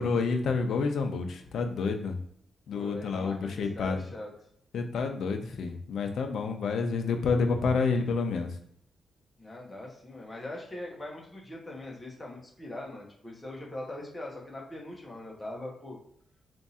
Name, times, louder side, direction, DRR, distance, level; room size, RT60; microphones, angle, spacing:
voice 1, 0.0-2.2 2.7-4.0 4.7-8.5, left 4 dB, 65° left, 5 dB, 0.6 m, -29 dB
voice 2, 2.7-4.3 9.4-16.0, left 1 dB, 10° left, -3 dB, 1.0 m, -41 dB
3.5 x 2.6 x 4.1 m, 0.69 s
wide cardioid pair, 170°, 0 cm